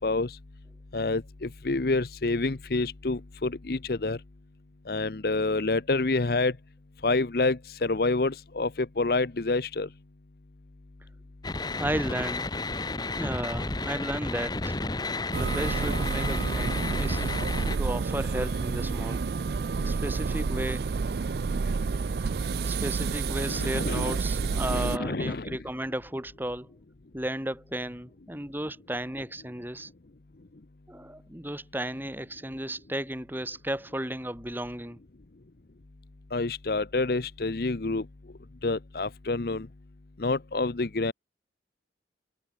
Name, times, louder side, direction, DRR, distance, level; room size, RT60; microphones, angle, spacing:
voice 1, 0.0-0.3 0.9-4.2 4.9-6.5 7.0-9.9 23.5-25.6 36.3-38.0 38.6-39.7 40.2-41.1, left 3 dB, 55° left, 0.8 m, -28 dB
sound 1, 11.4-17.8, left 2 dB, 25° left, 1.0 m, -32 dB
voice 2, 11.8-12.5 13.1-14.9 15.4-17.2 17.8-19.2 19.8-20.9 22.2-26.7 27.1-29.9 30.9-35.0, right 1 dB, 10° right, 3.8 m, -34 dB
sound 2, 15.3-25.0, right 4 dB, 65° right, 0.4 m, -29 dB
head